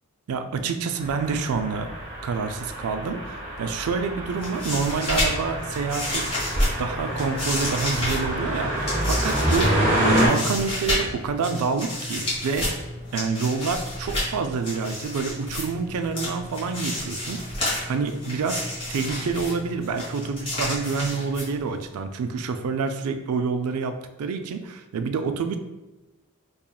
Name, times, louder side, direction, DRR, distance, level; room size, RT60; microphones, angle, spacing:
voice 1, 0.3-1.9 2.2-6.3 6.8-9.7 10.2-12.7 13.1-17.4 17.9-18.6 18.9-25.6, right 5 dB, 80° right, 8 dB, 0.4 m, -27 dB
sound 1, 1.0-10.3, right 1 dB, 30° right, 1.4 m, -27 dB
sound 2, 4.3-21.9, left 1 dB, 30° left, 1.4 m, -30 dB
4.2 x 3.0 x 2.2 m, 1.1 s
head